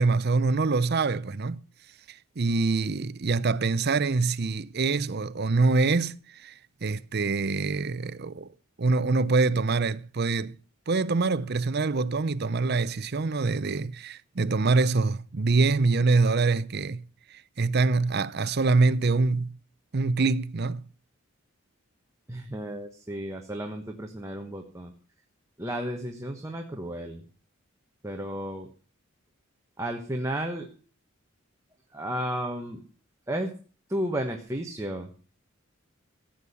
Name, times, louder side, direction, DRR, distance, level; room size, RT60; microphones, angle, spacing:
voice 1, 0.0-1.6 2.1-6.5 6.8-8.5 8.8-10.5 10.9-17.0 17.3-19.6 19.9-20.8, right 3 dB, 50° right, 0.6 m, -25 dB
voice 2, 22.3-24.9 25.6-27.2 28.0-28.7 29.8-30.7 31.9-32.8 33.3-33.5 33.9-35.1, right 1 dB, 15° right, 1.3 m, -33 dB
15.5 x 8.6 x 7.0 m
head